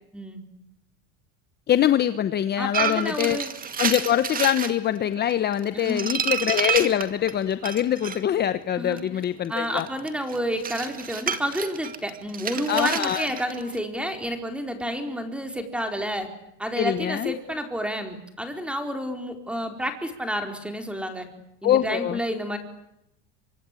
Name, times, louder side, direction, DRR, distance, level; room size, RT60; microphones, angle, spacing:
voice 1, 1.7-3.4 3.8-9.9 12.7-13.3 16.8-17.3 21.6-22.2, left 10 dB, 30° left, 12 dB, 1.0 m, -24 dB
voice 2, 2.6-3.5 5.7-6.2 8.8-9.0 9.5-16.3 16.6-21.3 21.6-22.6, equal, 5° right, 6 dB, 4.3 m, -30 dB
sound 1, 2.7-4.7 5.3-8.2 8.9-13.8, right 7 dB, 25° right, 2.3 m, -29 dB
28.0 x 25.0 x 8.4 m, 0.83 s
cardioid pair, 150°, 34 cm